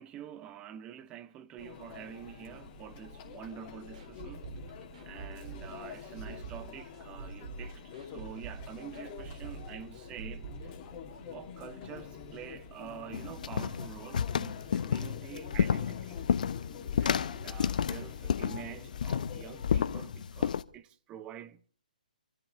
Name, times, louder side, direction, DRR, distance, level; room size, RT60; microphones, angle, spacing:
voice 1, 0.0-4.5 5.0-10.8 11.3-16.2 16.6-16.7 17.0-21.7, right 9 dB, 20° right, 0.8 m, -47 dB
Conversation / Chatter / Crowd, 1.6-20.0, left 6 dB, 25° left, 2.7 m, -47 dB
sound 1, 3.9-11.7 11.9-12.0 12.4-12.5, right 4 dB, 50° right, 2.8 m, -45 dB
sound 2, 13.1-20.6, left 7 dB, 60° left, 0.8 m, -31 dB
26.5 x 13.0 x 3.4 m
hypercardioid pair, 140°, 5 cm